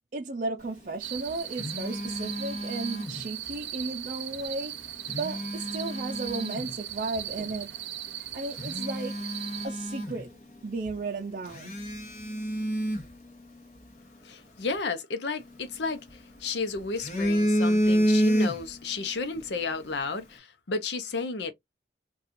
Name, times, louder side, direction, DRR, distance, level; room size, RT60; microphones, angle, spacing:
voice 1, 0.1-4.8 5.1-7.8 8.3-9.2 9.6-10.3 10.6-11.8, right 3 dB, 45° right, 0.5 m, -34 dB
Telephone, 1.0-3.6 4.9-6.8 7.4-7.5 8.1-8.2 8.5-10.6 10.9-11.0 11.5-13.9 15.4-16.4 16.8-18.9 19.2-19.4, equal, 40° left, 1.0 m, -29 dB
sound 1, 1.0-9.7, right 12 dB, 85° right, 0.7 m, -38 dB
voice 2, 14.2-21.5, left 4 dB, 75° left, 0.7 m, -33 dB
4.1 x 2.3 x 2.6 m
head